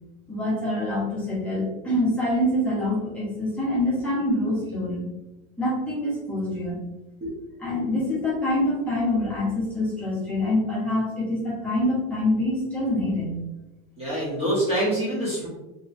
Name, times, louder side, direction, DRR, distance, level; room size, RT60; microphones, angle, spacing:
voice 1, 0.3-5.0 5.6-6.8 7.6-13.4, left 1 dB, 5° left, -9 dB, 1.0 m, -25 dB
voice 2, 7.2-7.6 14.0-15.5, right 1 dB, 20° right, -8 dB, 0.9 m, -26 dB
3.0 x 3.0 x 2.6 m, 0.97 s
supercardioid pair, 155°, 34 cm